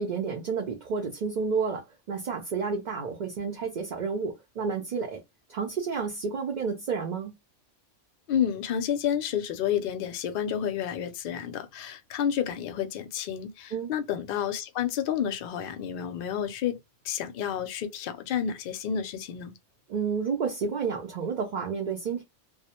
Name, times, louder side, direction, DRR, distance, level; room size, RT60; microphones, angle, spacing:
voice 1, 0.0-5.2 5.5-7.3 13.7-13.9 19.9-22.2, right 5 dB, 55° right, 0.5 m, -30 dB
voice 2, 8.3-16.8 17.0-19.5, left 9 dB, 60° left, 0.6 m, -30 dB
2.3 x 2.1 x 2.8 m
omnidirectional pair, 1.3 m